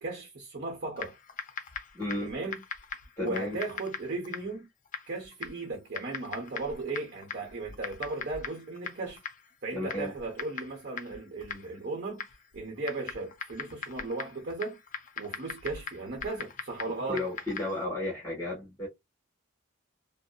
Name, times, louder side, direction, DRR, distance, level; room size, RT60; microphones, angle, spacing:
voice 1, 0.0-1.1 2.2-2.6 3.2-4.7 5.1-9.2 9.6-12.2 12.5-14.8 15.2-17.3, right 3 dB, 55° right, 0.9 m, -36 dB
Typing, 1.0-17.8, left 6 dB, 40° left, 0.5 m, -42 dB
voice 2, 1.9-2.3 3.2-3.6 9.7-10.1 17.1-18.9, left 2 dB, 15° left, 1.2 m, -33 dB
2.7 x 2.0 x 2.3 m
head